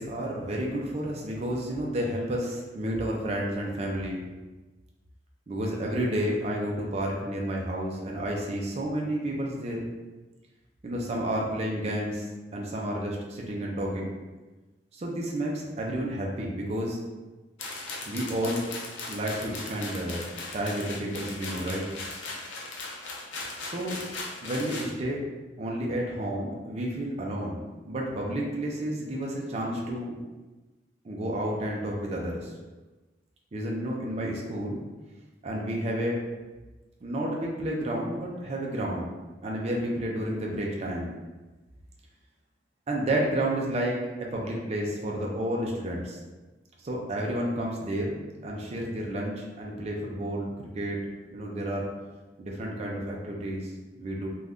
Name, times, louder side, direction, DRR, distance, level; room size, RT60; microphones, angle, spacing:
voice 1, 0.0-4.2 5.5-9.9 10.8-14.1 14.9-17.0 18.1-18.6 19.1-20.3 20.5-21.8 23.6-24.0 24.4-25.2 25.6-27.6 27.9-30.2 31.0-32.5 33.5-34.8 35.4-36.2 37.0-39.1 39.4-41.1 42.9-46.2 46.8-51.0 51.3-51.9 52.4-53.7 54.0-54.3, right 1 dB, 35° right, -2 dB, 0.4 m, -31 dB
sound 1, 17.6-24.9, left 3 dB, 85° left, 0.5 m, -38 dB
2.5 x 2.2 x 3.4 m, 1.2 s
head